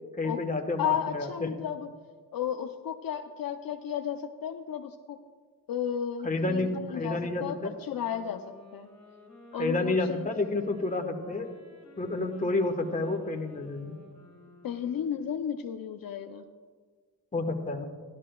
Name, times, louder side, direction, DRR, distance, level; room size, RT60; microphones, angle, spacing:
voice 1, 0.1-1.5 6.2-7.7 9.6-11.5 12.0-14.0 17.3-17.9, left 2 dB, 20° left, 3 dB, 1.2 m, -30 dB
voice 2, 0.8-1.9 2.3-5.2 5.7-7.6 7.9-8.4 8.7-8.9 9.5-10.2 14.6-16.5, left 9 dB, 65° left, 6 dB, 0.6 m, -33 dB
sound 1, 7.9-15.6, left 1 dB, ahead, 3.6 m, -53 dB
16.0 x 12.0 x 2.3 m, 1.5 s
cardioid pair, 90°, 38 cm